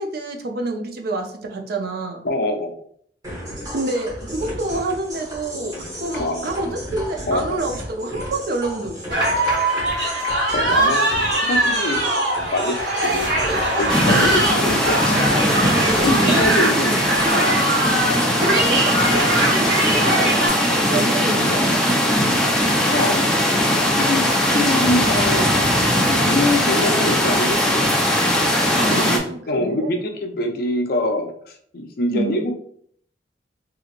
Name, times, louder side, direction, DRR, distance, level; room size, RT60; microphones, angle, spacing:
voice 1, 0.0-2.2 3.7-5.7 6.0-9.2 16.0-17.4 18.4-21.8 28.8-29.9 32.1-32.3, right 2 dB, 60° right, 3 dB, 0.5 m, -27 dB
voice 2, 2.2-2.7 6.1-6.4 7.2-7.6 10.5-11.1 11.4-12.1 12.5-13.3 13.8-15.0 16.0-17.0 17.3-17.5 22.9-23.2 24.0-25.5 26.1-27.8 28.9-29.2 29.5-32.5, left 1 dB, 55° left, 4 dB, 0.5 m, -24 dB
sound 1, 3.2-16.5, equal, 20° right, 1.1 m, -33 dB
sound 2, 9.1-20.5, right 1 dB, 80° right, 1.1 m, -21 dB
sound 3, 13.9-29.2, left 1 dB, 5° left, 0.4 m, -19 dB
2.8 x 2.8 x 2.5 m, 0.62 s
head